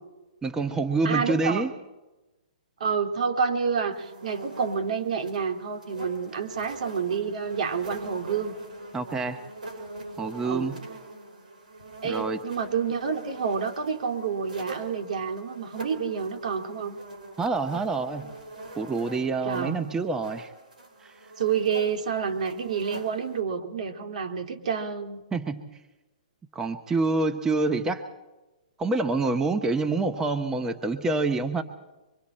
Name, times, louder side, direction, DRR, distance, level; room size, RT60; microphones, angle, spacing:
voice 1, 0.4-1.7 8.9-9.4 10.2-10.8 12.0-12.4 17.4-18.3 18.8-20.5 21.0-21.1 25.3-25.7 26.5-28.0 28.8-31.6, right 3 dB, 10° right, 7 dB, 0.9 m, -27 dB
voice 2, 1.0-1.7 2.8-8.6 10.4-10.7 12.0-17.0 19.4-19.8 21.4-25.2, right 6 dB, 65° right, 5 dB, 2.4 m, -28 dB
sound 1, 3.9-23.4, right 2 dB, 85° right, 5.6 m, -43 dB
25.5 x 23.5 x 4.4 m, 1.1 s
hypercardioid pair, 135°, 4 cm